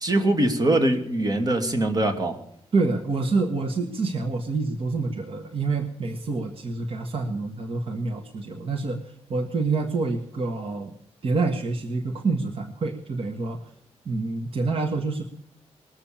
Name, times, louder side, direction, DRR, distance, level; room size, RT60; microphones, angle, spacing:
voice 1, 0.0-2.4, right 1 dB, 35° right, 4 dB, 2.5 m, -22 dB
voice 2, 2.7-10.9 11.2-13.7 14.0-15.2, right 3 dB, 55° right, 5 dB, 1.6 m, -27 dB
21.0 x 7.4 x 8.7 m, 0.77 s
cardioid pair, 95°, 11 cm